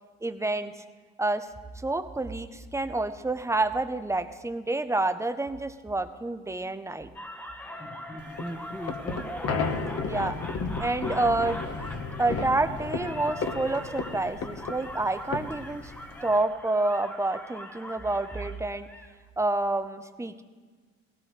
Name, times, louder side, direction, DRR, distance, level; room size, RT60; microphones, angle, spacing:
voice 1, 0.2-0.7 1.2-1.5 1.8-7.1 10.0-10.4 10.8-11.6 11.9-15.9 16.2-18.9 19.4-20.4, right 2 dB, 10° right, 10 dB, 0.6 m, -28 dB
sound 1, 7.1-19.1, equal, 5° left, 1.0 m, -41 dB
sound 2, 8.2-16.4, left 4 dB, 50° left, 1.2 m, -33 dB
18.0 x 16.5 x 3.2 m, 1.4 s
cardioid pair, 90°, 30 cm